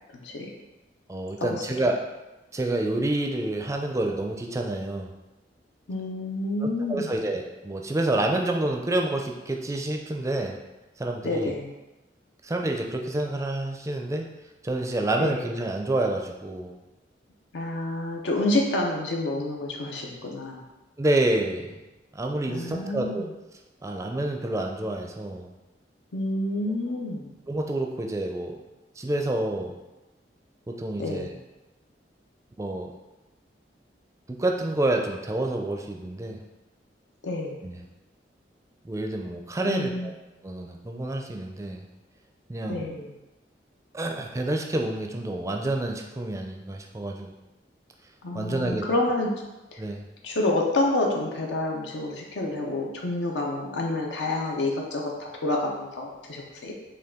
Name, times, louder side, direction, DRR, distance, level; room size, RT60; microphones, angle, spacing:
voice 1, 0.2-0.5 1.4-1.9 5.9-7.1 11.2-11.7 15.2-15.4 17.5-20.6 22.5-23.3 26.1-27.3 31.0-31.4 37.2-37.6 39.6-40.1 42.7-43.1 48.2-49.3 49.7-49.8 50.2-56.7, left 2 dB, 80° left, 0 dB, 0.6 m, -28 dB
voice 2, 1.1-2.0 2.5-5.1 6.6-10.6 11.0-11.5 12.4-14.3 14.6-16.8 21.0-21.8 22.1-23.3 23.8-25.5 27.5-28.5 29.0-29.7 30.7-31.3 32.6-32.9 34.4-36.4 37.6-37.8 38.8-40.1 40.4-41.8 42.5-42.9 43.9-47.3 48.3-48.8 49.8-50.0, right 2 dB, 15° right, 2 dB, 0.4 m, -28 dB
5.4 x 2.3 x 3.6 m, 1.1 s
head